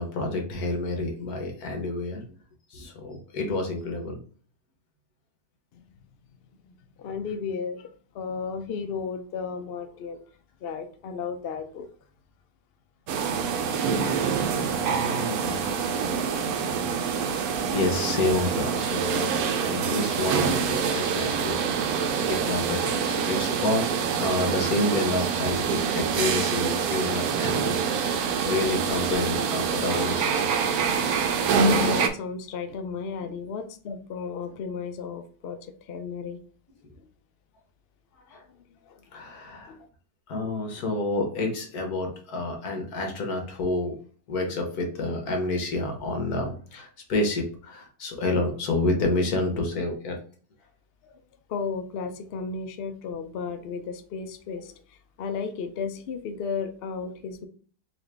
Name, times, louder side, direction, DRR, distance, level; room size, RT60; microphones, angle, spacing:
voice 1, 0.0-2.2 2.7-4.2 14.8-15.6 17.4-21.8 22.2-23.9 24.2-30.2 38.3-38.4 39.1-39.7 40.3-44.0 44.3-50.2, left 2 dB, 65° left, 3 dB, 1.5 m, -29 dB
voice 2, 7.0-7.9 8.1-10.2 10.6-11.9 31.6-36.4 37.0-37.1 38.3-39.0 39.6-39.9 51.0-51.2 51.5-57.5, left 5 dB, 85° left, 7 dB, 0.5 m, -34 dB
sound 1, 13.1-32.1, right 6 dB, 70° right, 1.0 m, -26 dB
4.0 x 2.9 x 3.3 m, 0.42 s
omnidirectional pair, 1.8 m